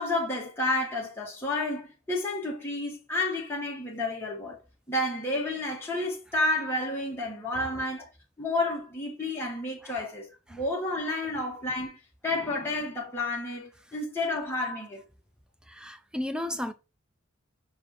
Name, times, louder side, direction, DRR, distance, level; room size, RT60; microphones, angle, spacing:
voice 1, 0.0-4.6 4.9-8.1 8.4-12.0 12.2-15.0, left 2 dB, 10° left, 1.8 m, -30 dB
voice 2, 7.5-7.8 9.8-10.0 10.5-10.6 15.7-16.7, left 1 dB, 5° right, 0.5 m, -35 dB
5.5 x 4.6 x 4.4 m
head